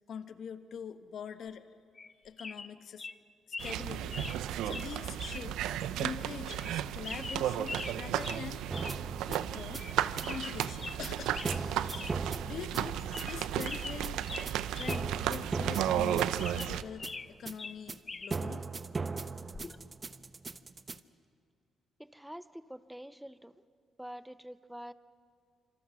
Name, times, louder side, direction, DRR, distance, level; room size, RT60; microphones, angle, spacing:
voice 1, 0.1-1.6 2.2-3.1 3.5-4.2 4.6-5.6 6.0-8.6 9.3-9.8 10.2-12.2 12.5-14.2 14.7-18.6, left 7 dB, 65° left, 10 dB, 1.2 m, -44 dB
sound 1, 2.0-2.1 2.4-2.7 3.0-3.2 3.5-3.8 4.1-4.4 4.7-4.9 5.2-5.5 5.8-5.9 6.5-6.7 7.0-8.4 8.7-9.0 9.3-9.4 9.7-9.9 10.2-11.0 11.3-11.6 11.9-12.1 12.5-12.6 13.0-13.4 13.6-15.0 15.3-15.4 16.0-17.3 17.6-18.3 19.5-19.8, left 4 dB, 30° left, 0.8 m, -42 dB
sound 2, 3.6-16.8, right 11 dB, 90° right, 0.6 m, -34 dB
sound 3, 8.7-21.0, right 4 dB, 30° right, 0.9 m, -39 dB
voice 2, 22.0-23.6 24.0-24.9, equal, 5° right, 13 dB, 0.8 m, -46 dB
26.0 x 25.5 x 6.2 m, 2.2 s
cardioid pair, 90°, 0 cm